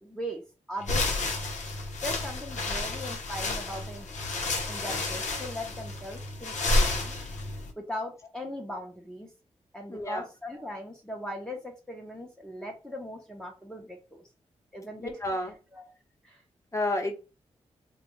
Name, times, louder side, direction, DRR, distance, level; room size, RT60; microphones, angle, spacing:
voice 1, 0.0-0.4 0.7-1.4 2.0-4.1 4.7-7.1 7.8-9.3 9.7-14.2 14.7-15.2 15.7-15.9 16.2-16.4, equal, 5° left, -1 dB, 0.8 m, -39 dB
sound 1, 0.8-7.7, left 2 dB, 80° left, 0.8 m, -30 dB
voice 2, 9.9-10.2 15.0-15.5 16.7-17.2, left 1 dB, 25° left, 3 dB, 0.9 m, -30 dB
3.1 x 2.3 x 3.0 m, 0.32 s
cardioid pair, 65°, 12 cm